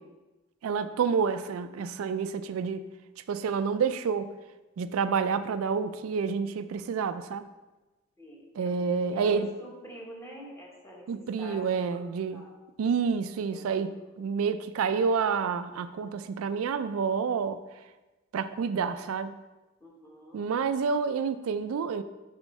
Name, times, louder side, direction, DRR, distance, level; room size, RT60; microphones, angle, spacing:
voice 1, 0.6-2.9 3.3-4.3 4.8-7.4 8.6-9.5 11.1-12.5 12.8-17.6 18.3-19.3 20.3-22.0, right 5 dB, 85° right, 11 dB, 0.3 m, -29 dB
voice 2, 8.2-12.0 12.3-12.5 13.5-13.8 19.8-20.5, equal, 15° left, -2 dB, 1.1 m, -47 dB
6.3 x 6.1 x 3.2 m, 1.1 s
head